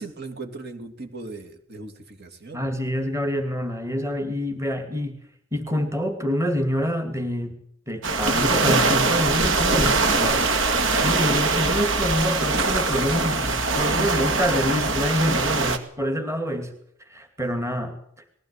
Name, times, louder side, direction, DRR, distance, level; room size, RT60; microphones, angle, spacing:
voice 1, 0.0-2.6 10.7-11.1 15.5-15.7, right 3 dB, 55° right, 4 dB, 2.9 m, -38 dB
voice 2, 2.5-5.2 5.5-7.6 7.9-10.8 11.0-16.7 17.1-18.0, equal, 15° right, 6 dB, 2.4 m, -26 dB
sound 1, 8.0-15.8, right 3 dB, 75° right, 2.2 m, -22 dB
20.0 x 16.0 x 8.4 m, 0.66 s
head